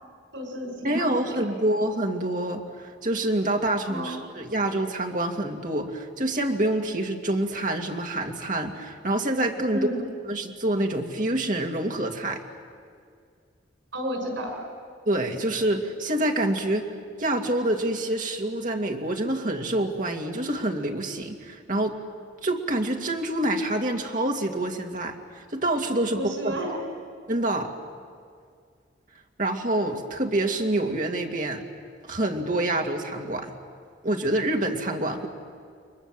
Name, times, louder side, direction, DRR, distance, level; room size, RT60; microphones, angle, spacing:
voice 1, 0.3-1.4 3.9-4.2 9.7-10.0 13.9-14.6 26.1-26.8, equal, 90° right, 2 dB, 6.0 m, -32 dB
voice 2, 0.8-9.9 10.3-12.4 15.1-16.9 17.2-22.0 22.4-26.8 27.3-27.7 29.4-31.6 32.1-33.5 34.0-35.3, right 1 dB, 45° right, 2 dB, 2.3 m, -27 dB
30.0 x 23.0 x 7.5 m, 2.1 s
head